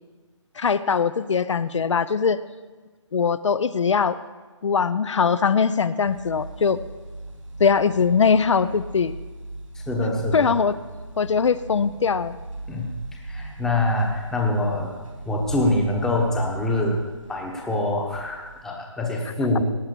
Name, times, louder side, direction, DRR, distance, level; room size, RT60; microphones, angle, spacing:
voice 1, 0.6-2.4 3.1-4.2 4.6-6.8 7.6-9.2 10.3-10.8 11.2-12.3, left 6 dB, 70° left, 15 dB, 0.6 m, -21 dB
sound 1, 6.1-18.7, right 2 dB, 90° right, 3.1 m, -38 dB
voice 2, 9.7-10.5 12.7-14.9 15.3-17.0 17.3-19.6, left 2 dB, 5° left, 0 dB, 0.9 m, -25 dB
17.5 x 6.0 x 6.8 m, 1.3 s
hypercardioid pair, 165°, 16 cm